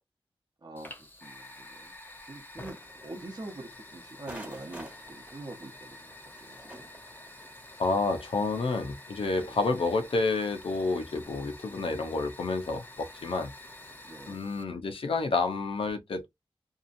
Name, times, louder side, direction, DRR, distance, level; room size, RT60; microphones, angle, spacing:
voice 1, 0.6-1.9 2.3-6.9 9.4-9.6 14.0-14.4, right 2 dB, 50° right, 0.7 m, -45 dB
Fire, 0.8-14.6, left 2 dB, 20° left, 0.8 m, -49 dB
sound 1, 4.3-9.6, right 1 dB, 15° right, 1.0 m, -49 dB
voice 2, 7.8-13.5 14.3-16.3, left 3 dB, 80° left, 0.6 m, -29 dB
2.8 x 2.4 x 2.5 m
wide cardioid pair, 75°, 9 cm